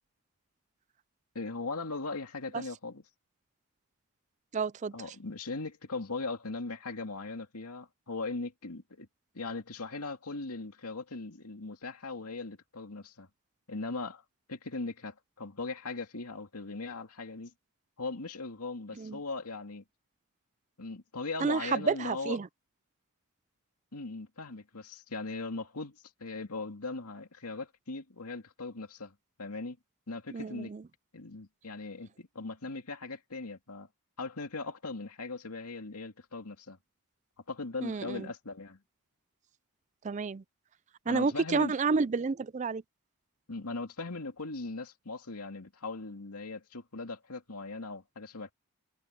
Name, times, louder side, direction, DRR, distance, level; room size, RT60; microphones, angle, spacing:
voice 1, 1.3-3.0 4.9-9.1 9.3-13.3 13.7-14.2 14.5-17.5 18.0-19.8 20.8-22.4 23.9-29.8 30.1-30.7 31.1-33.9 34.2-36.8 37.5-38.8 41.1-41.7 43.5-48.5, left 3 dB, 90° left, 2.4 m, -39 dB
voice 2, 4.5-4.9 19.0-19.2 21.4-22.5 30.3-30.8 37.8-38.3 40.0-40.4 41.1-42.8, right 4 dB, 30° right, 0.4 m, -30 dB
head